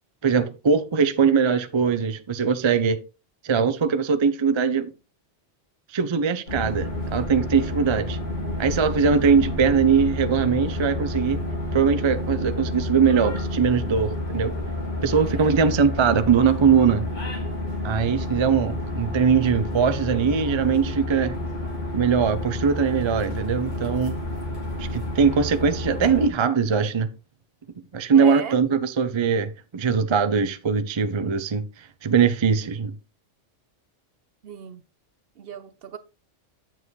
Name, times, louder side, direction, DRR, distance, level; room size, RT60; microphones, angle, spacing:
voice 1, 0.2-3.0 3.4-4.9 5.9-8.2 8.6-11.4 11.7-14.5 15.0-17.1 17.8-21.4 21.9-24.2 24.8-27.1 27.9-32.9, right 6 dB, 35° right, 0.5 m, -21 dB
sound 1, 6.5-26.3, left 1 dB, 80° left, 3.6 m, -30 dB
voice 2, 9.1-9.6 15.7-15.9 28.1-28.6 34.4-34.8 35.4-36.0, right 9 dB, 60° right, 0.8 m, -35 dB
8.2 x 7.4 x 3.1 m
omnidirectional pair, 1.2 m